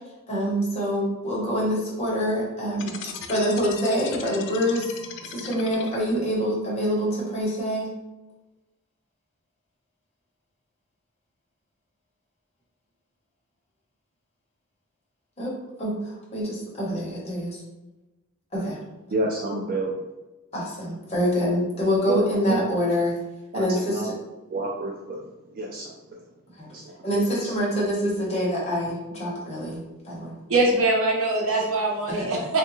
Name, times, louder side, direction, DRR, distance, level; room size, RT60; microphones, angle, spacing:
voice 1, 0.3-2.9 3.3-4.9 5.2-7.9 15.4-16.0 16.3-17.5 18.5-18.8 20.5-23.1 23.5-24.1 26.6-26.7 27.0-30.4, equal, 30° left, -5 dB, 1.0 m, -25 dB
sound 1, 2.7-6.3, left 6 dB, 55° left, 0.3 m, -38 dB
voice 2, 19.1-20.0 22.1-22.6 23.5-24.1 24.5-25.2 25.5-26.2 26.7-26.8 27.3-27.5, right 2 dB, 40° right, -1 dB, 0.3 m, -29 dB
voice 3, 30.5-32.6, right 2 dB, 70° right, -2 dB, 0.8 m, -22 dB
3.5 x 2.2 x 3.0 m, 1.1 s
head